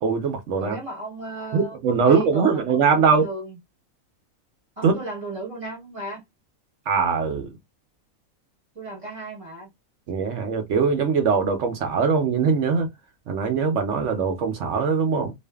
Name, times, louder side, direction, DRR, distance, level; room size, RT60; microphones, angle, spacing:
voice 1, 0.0-0.8 1.5-3.3 4.8-5.0 6.9-7.5 10.1-12.9 13.3-15.3, right 5 dB, 65° right, 0.9 m, -21 dB
voice 2, 0.6-3.6 4.8-6.2 8.7-9.7, right 2 dB, 30° right, 0.8 m, -35 dB
2.5 x 2.4 x 2.2 m
omnidirectional pair, 1.5 m